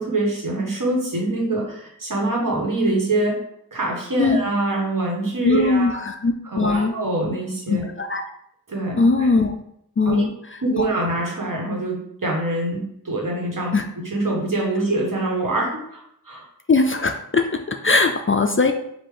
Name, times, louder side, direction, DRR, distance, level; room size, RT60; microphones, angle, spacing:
voice 1, 0.0-3.4 3.7-6.0 6.4-7.9 8.7-9.3 10.0-10.3 10.6-13.7 14.0-16.4, right 2 dB, 60° right, -2 dB, 1.4 m, -24 dB
voice 2, 5.4-6.9 7.7-8.2 9.0-9.5 10.0-10.3 10.8-10.9 13.7-13.8 16.7-18.7, left 3 dB, 35° left, 5 dB, 0.4 m, -20 dB
5.0 x 2.5 x 3.7 m, 0.73 s
wide cardioid pair, 50°, 37 cm